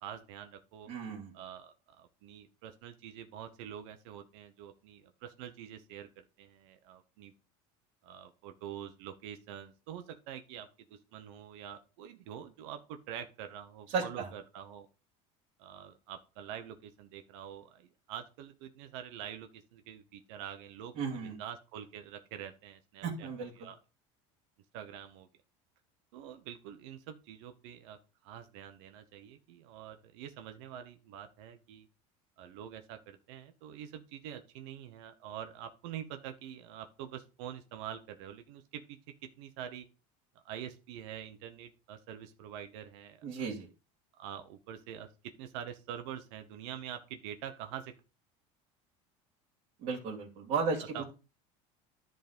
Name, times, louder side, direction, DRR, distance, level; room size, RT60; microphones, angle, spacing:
voice 1, 0.0-0.9 1.3-7.3 8.0-14.9 15.6-23.3 23.6-23.8 24.7-25.3 26.1-31.9 32.4-39.9 40.4-43.5 44.2-47.9 50.6-51.0, right 9 dB, 80° right, 7 dB, 0.9 m, -46 dB
voice 2, 0.9-1.3 13.9-14.3 20.9-21.4 23.0-23.7 43.2-43.7 49.8-51.0, right 5 dB, 55° right, -1 dB, 2.5 m, -35 dB
10.5 x 3.8 x 5.1 m, 0.32 s
cardioid pair, 140°, 15 cm